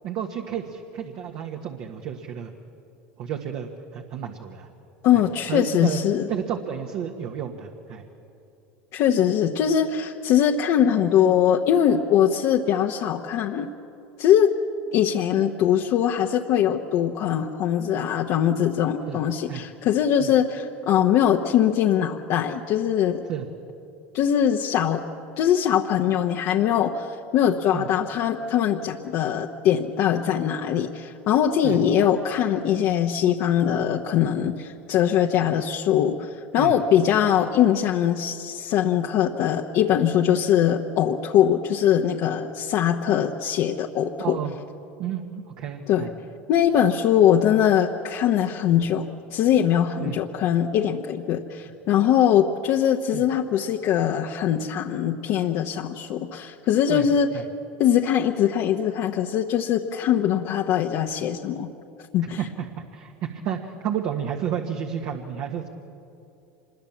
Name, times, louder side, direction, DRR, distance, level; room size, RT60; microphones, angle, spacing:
voice 1, 0.0-2.5 3.2-4.7 5.5-6.0 6.3-8.0 19.1-19.2 19.5-19.6 20.2-20.3 23.3-23.5 27.7-27.9 31.6-31.8 36.5-36.7 44.2-44.5 45.0-46.1 50.0-50.2 53.1-53.2 56.9-57.1 57.3-57.4 62.4-65.7, right 9 dB, 60° right, 3 dB, 1.6 m, -31 dB
voice 2, 5.0-6.3 8.9-13.7 14.2-14.5 14.9-23.2 24.1-25.0 25.4-44.4 45.9-46.1 46.5-57.3 57.8-61.7 62.1-62.4, left 9 dB, 60° left, 1 dB, 1.1 m, -22 dB
25.5 x 21.5 x 7.3 m, 2.7 s
supercardioid pair, 105°, 6 cm